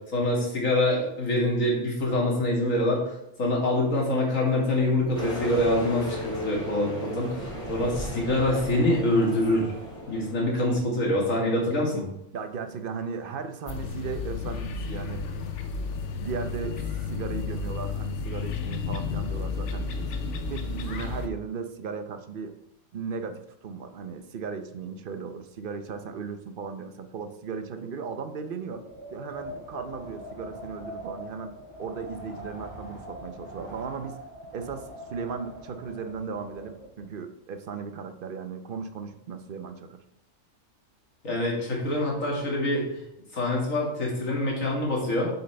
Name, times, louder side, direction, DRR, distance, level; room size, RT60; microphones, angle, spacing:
voice 1, 0.1-9.7 10.1-12.0 41.2-42.8 43.3-45.3, left 1 dB, 85° left, -3 dB, 2.6 m, -25 dB
sound 1, 5.1-10.7, left 1 dB, 15° right, 2.9 m, -35 dB
voice 2, 12.3-15.2 15.7-15.9 16.2-16.8 17.1-20.1 20.5-22.5 22.9-28.8 29.1-31.5 31.8-34.2 34.5-40.0, right 5 dB, 50° right, 8 dB, 0.7 m, -36 dB
sound 2, 13.7-21.3, left 5 dB, 65° left, 1.0 m, -32 dB
Wind, 28.6-37.0, equal, 25° left, 2.9 m, -43 dB
7.9 x 6.9 x 3.3 m, 0.81 s
omnidirectional pair, 1.3 m